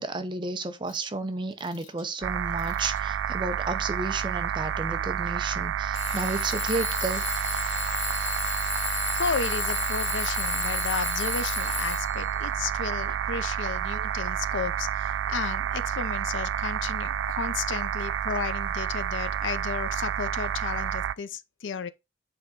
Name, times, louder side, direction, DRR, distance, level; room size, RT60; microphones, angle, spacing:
voice 1, 0.0-7.2, right 3 dB, 25° right, 0.6 m, -32 dB
Alarm / Clock, 0.9-1.0 1.6-2.0 2.6-3.0 3.9-4.0 5.9-12.3, left 5 dB, 40° left, 1.1 m, -33 dB
sound 1, 2.2-21.1, right 9 dB, 85° right, 0.3 m, -30 dB
voice 2, 8.9-21.9, left 5 dB, 85° left, 0.6 m, -33 dB
7.8 x 3.5 x 3.7 m
head